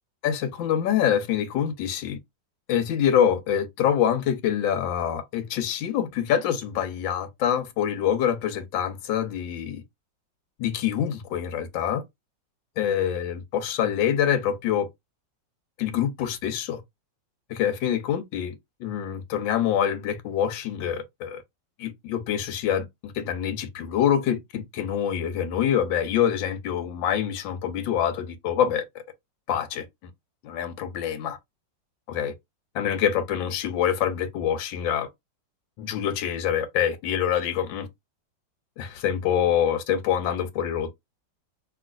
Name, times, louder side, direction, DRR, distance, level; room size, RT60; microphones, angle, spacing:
voice 1, 0.2-2.2 2.7-9.8 10.6-12.0 12.8-14.9 15.8-16.8 17.5-18.5 18.8-21.4 21.8-29.0 29.5-30.1 30.4-31.4 32.1-32.3 32.7-35.1 35.8-37.9 38.8-40.9, left 9 dB, 85° left, 1.4 m, -25 dB
3.0 x 2.9 x 2.4 m
omnidirectional pair, 2.0 m